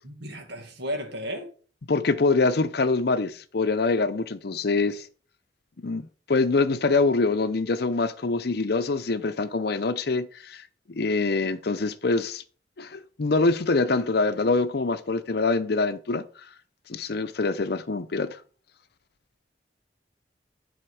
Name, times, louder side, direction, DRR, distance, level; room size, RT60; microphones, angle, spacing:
voice 1, 0.0-1.5, equal, 65° right, 2.1 m, -34 dB
voice 2, 1.9-5.1 5.8-12.4 12.8-16.3 16.9-18.4, left 3 dB, 60° left, 0.6 m, -25 dB
10.5 x 4.4 x 4.8 m
head